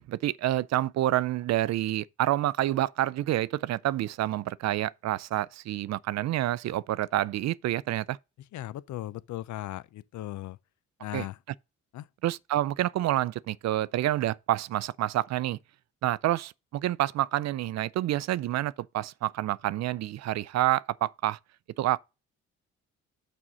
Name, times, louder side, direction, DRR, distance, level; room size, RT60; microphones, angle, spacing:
voice 1, 0.0-8.2 11.1-11.3 12.2-15.6 16.0-21.4 21.8-22.0, right 14 dB, 60° right, 0.4 m, -28 dB
voice 2, 8.5-10.6 11.0-11.4 11.9-12.1, left 14 dB, 70° left, 0.6 m, -37 dB
6.2 x 5.4 x 6.2 m
cardioid pair, 90°, 30 cm